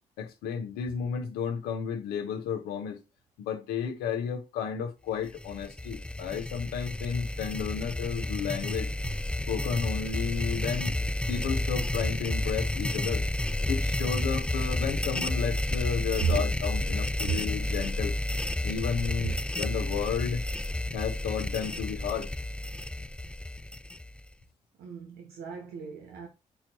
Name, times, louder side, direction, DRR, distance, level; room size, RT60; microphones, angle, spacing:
voice 1, 0.2-3.0 3.4-8.9 9.5-10.9 11.3-13.2 13.7-18.1 18.6-20.4 20.9-22.3, left 7 dB, 85° left, 1.3 m, -32 dB
sound 1, 5.3-24.3, left 1 dB, 5° left, 0.4 m, -31 dB
voice 2, 13.6-14.2 16.2-16.4 17.2-17.4 24.8-26.3, right 7 dB, 75° right, 1.2 m, -33 dB
8.5 x 4.5 x 3.0 m
hypercardioid pair, 40°, 16 cm